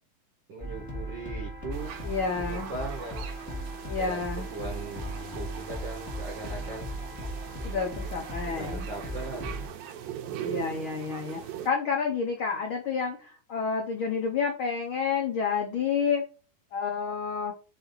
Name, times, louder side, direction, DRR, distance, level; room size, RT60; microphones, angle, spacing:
voice 1, 0.5-1.9 2.3-3.2 4.0-6.9 8.4-9.6, right 3 dB, 55° right, 0 dB, 1.3 m, -39 dB
sound 1, 0.6-9.7, equal, 15° left, 0.6 m, -37 dB
sound 2, 1.7-11.7, right 10 dB, 90° right, 2.6 m, -41 dB
voice 2, 2.0-2.7 3.9-4.5 7.6-8.9 10.4-16.2 16.7-17.5, left 5 dB, 85° left, 1 dB, 1.1 m, -29 dB
5.6 x 4.1 x 4.1 m, 0.34 s
omnidirectional pair, 3.9 m